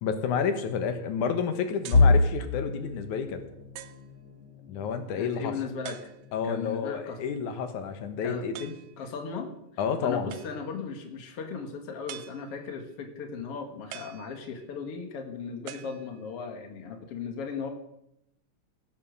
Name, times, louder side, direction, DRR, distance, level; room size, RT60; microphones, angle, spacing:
voice 1, 0.0-3.4 4.7-5.5 6.3-8.7 9.8-10.3, left 6 dB, 90° left, 8 dB, 2.7 m, -30 dB
sound 1, 1.8-2.2 2.9-3.0 3.8-4.1 5.8-6.5 8.5-9.0 10.3-10.8 12.1-12.8 13.9-14.8 15.7-16.5, right 12 dB, 80° right, 2.1 m, -45 dB
sound 2, 1.9-13.8 14.2-14.4 14.8-15.0 15.9-16.3, left 3 dB, 30° left, 1.3 m, -31 dB
voice 2, 5.1-6.0 6.4-7.3 8.2-8.5 9.0-9.5 10.0-17.7, left 5 dB, 55° left, 5 dB, 2.6 m, -37 dB
17.5 x 8.5 x 6.5 m, 0.81 s
omnidirectional pair, 3.4 m